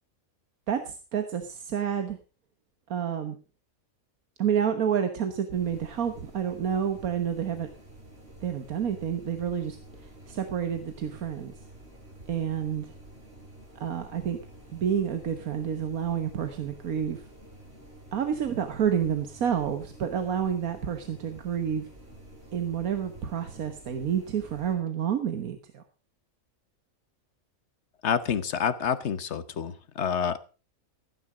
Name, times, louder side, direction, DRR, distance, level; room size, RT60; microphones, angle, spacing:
voice 1, 0.7-2.2 2.9-3.4 4.4-7.7 8.4-11.5 12.3-12.9 13.8-14.4 14.7-17.2 18.1-21.9 22.5-25.8, right 8 dB, 85° right, 8 dB, 1.6 m, -29 dB
sound 1, 5.5-24.8, right 1 dB, 45° right, 5.4 m, -49 dB
voice 2, 28.0-30.4, left 7 dB, 55° left, 13 dB, 1.2 m, -28 dB
15.0 x 9.8 x 5.0 m, 0.34 s
omnidirectional pair, 1.5 m